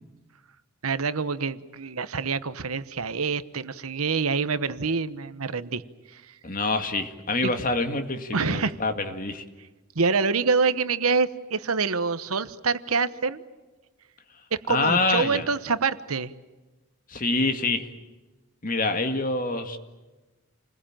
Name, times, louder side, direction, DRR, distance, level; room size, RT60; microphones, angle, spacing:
voice 1, 0.8-5.8 6.1-6.3 7.4-7.5 8.3-8.8 9.9-13.4 14.5-16.3, right 4 dB, 80° right, 13 dB, 1.1 m, -26 dB
voice 2, 6.4-9.4 14.7-15.4 17.1-17.9 18.6-19.8, left 3 dB, 40° left, 7 dB, 2.0 m, -26 dB
29.5 x 21.5 x 9.0 m, 1.2 s
head